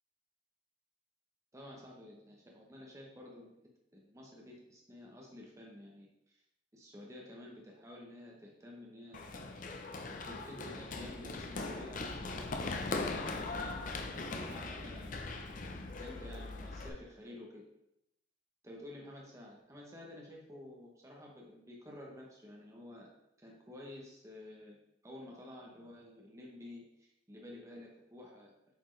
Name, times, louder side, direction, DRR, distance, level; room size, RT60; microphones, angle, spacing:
voice 1, 1.5-3.5 3.9-6.4 6.7-9.4 10.1-13.7 14.5-15.2 16.0-17.6 18.6-23.1 23.4-24.8 25.0-28.7, left 1 dB, 15° right, -2 dB, 0.9 m, -51 dB
Run, 9.1-16.9, left 3 dB, 45° left, 0.6 m, -40 dB
7.9 x 4.3 x 3.2 m, 0.83 s
head